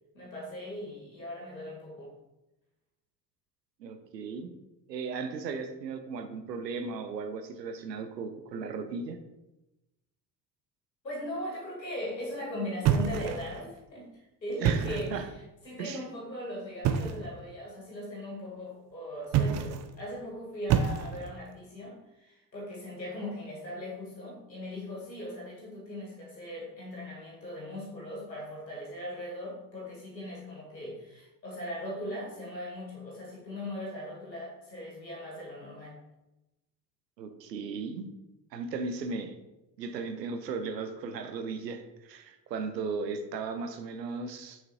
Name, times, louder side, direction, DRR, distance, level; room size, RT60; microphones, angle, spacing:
voice 1, 0.1-2.1 11.0-14.1 14.4-15.3 15.6-36.0, left 1 dB, 85° left, -4 dB, 1.8 m, -39 dB
voice 2, 3.8-4.5 4.9-9.2 14.6-15.3 15.8-16.1 37.2-38.1 38.5-39.4 39.8-44.6, right 4 dB, 75° right, 8 dB, 0.7 m, -36 dB
sound 1, 12.8-13.7 14.5-15.2 16.8-17.3 19.3-19.9 20.7-21.4, right 8 dB, 35° right, 0.5 m, -28 dB
6.5 x 5.9 x 2.9 m, 0.98 s
figure-of-eight pair, 55°, 50 cm